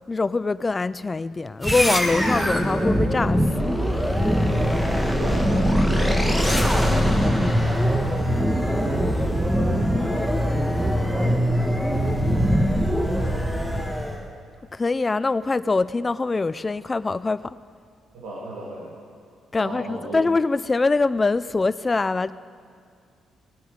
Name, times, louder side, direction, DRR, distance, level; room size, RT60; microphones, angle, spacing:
voice 1, 0.1-3.7 14.7-17.6 19.5-22.3, left 3 dB, 25° left, 16 dB, 0.4 m, -23 dB
sound 1, 1.6-14.3, equal, 5° right, 1.3 m, -22 dB
voice 2, 5.1-11.2 11.4-13.8 18.1-19.0 19.6-20.2, right 1 dB, 90° right, -6 dB, 2.2 m, -38 dB
19.0 x 9.0 x 5.1 m, 2.3 s
cardioid pair, 90°, 0 cm